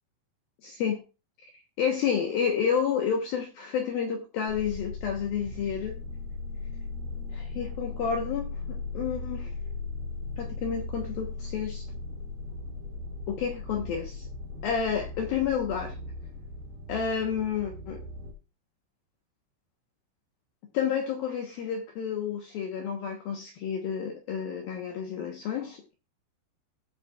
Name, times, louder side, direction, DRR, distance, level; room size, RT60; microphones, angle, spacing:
voice 1, 0.6-1.0 1.8-6.0 7.3-9.5 10.4-11.9 13.3-14.3 14.6-16.0 16.9-18.0 20.7-25.9, left 7 dB, 70° left, 2 dB, 2.3 m, -30 dB
sound 1, 4.5-18.3, left 3 dB, 75° right, 4.4 m, -38 dB
17.5 x 6.7 x 2.4 m, 0.29 s
omnidirectional pair, 5.6 m